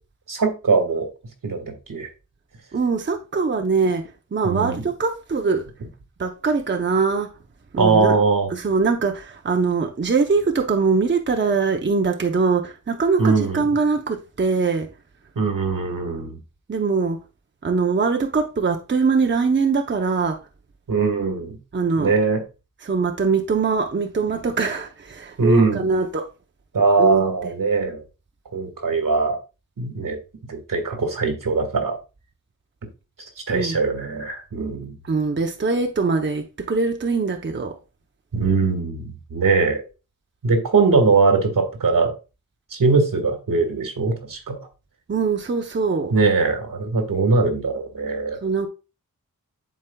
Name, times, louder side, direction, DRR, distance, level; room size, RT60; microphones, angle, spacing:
voice 1, 0.3-1.1 1.4-2.1 4.4-4.8 7.8-8.5 13.2-13.6 15.4-16.4 20.9-21.6 22.0-22.4 25.4-25.9 26.7-28.0 28.5-29.4 29.8-30.2 30.5-32.0 33.5-34.9 38.3-39.8 40.4-42.1 42.7-44.6 46.1-48.4, right 4 dB, 80° right, 1.8 m, -21 dB
voice 2, 2.7-5.6 6.2-7.3 7.7-8.2 8.5-14.9 16.7-17.2 17.6-20.4 21.7-22.1 22.8-26.3 27.0-27.2 33.5-33.8 35.0-37.8 45.1-46.1 48.4-48.7, right 4 dB, 35° right, 0.7 m, -22 dB
11.0 x 4.5 x 2.3 m
wide cardioid pair, 110°, 32 cm